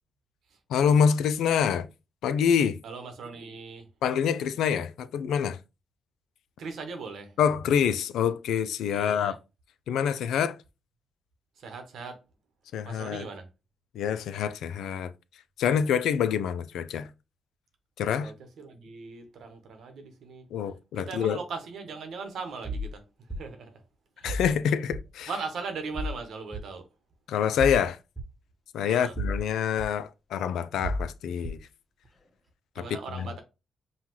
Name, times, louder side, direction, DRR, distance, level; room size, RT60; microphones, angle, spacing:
voice 1, 0.7-1.9 2.2-2.8 4.0-5.6 7.4-9.4 9.9-10.6 12.7-13.3 13.9-15.1 15.6-17.1 18.0-18.3 20.5-21.4 24.2-25.3 27.3-28.0 28.7-31.6 32.8-32.9 33.1-33.3, left 8 dB, 85° left, 0.4 m, -26 dB
voice 2, 2.8-3.9 6.6-7.3 8.9-9.3 11.6-12.2 12.8-13.4 18.2-20.5 20.9-23.0 23.3-23.8 24.2-24.3 25.3-26.9 28.9-29.1 32.8-33.4, right 4 dB, 75° right, 1.0 m, -39 dB
sound 1, 22.6-22.9 23.3-23.4 24.2-24.5 24.9-25.0 25.9-26.2 26.5-26.6 27.6-27.8 28.2-28.3 29.2-29.4 29.8-29.9 30.8-31.0 31.4-31.6, equal, ahead, 0.9 m, -31 dB
5.5 x 2.3 x 3.0 m
cardioid pair, 60°, 0 cm